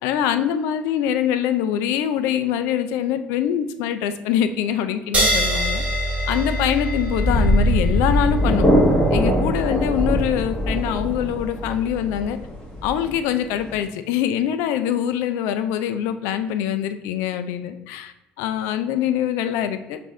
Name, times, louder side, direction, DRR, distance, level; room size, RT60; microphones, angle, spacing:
voice 1, 0.0-5.8 6.3-8.7 9.1-12.4 12.8-20.0, left 10 dB, 85° left, 10 dB, 0.4 m, -24 dB
sound 1, 5.1-12.1, right 1 dB, 30° right, 1.4 m, -26 dB
sound 2, 7.0-13.8, equal, 15° left, 1.6 m, -21 dB
6.1 x 2.6 x 3.2 m, 0.97 s
supercardioid pair, 85°, 4 cm